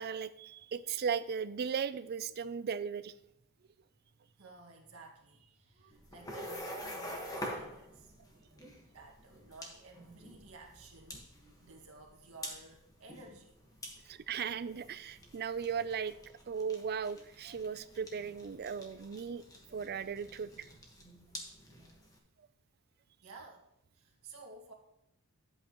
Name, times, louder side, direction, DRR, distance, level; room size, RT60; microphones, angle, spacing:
voice 1, 0.0-3.1 14.0-16.1 16.5-19.4 19.7-20.7, right 6 dB, 45° right, 14 dB, 0.4 m, -37 dB
voice 2, 4.4-8.1 8.9-11.3 11.6-13.6 13.9-14.1 23.2-23.7 23.9-24.7, right 3 dB, 75° right, 1 dB, 1.8 m, -54 dB
sound 1, 5.9-22.2, equal, 15° left, 1.4 m, -47 dB
11.5 x 8.0 x 3.0 m, 0.81 s
head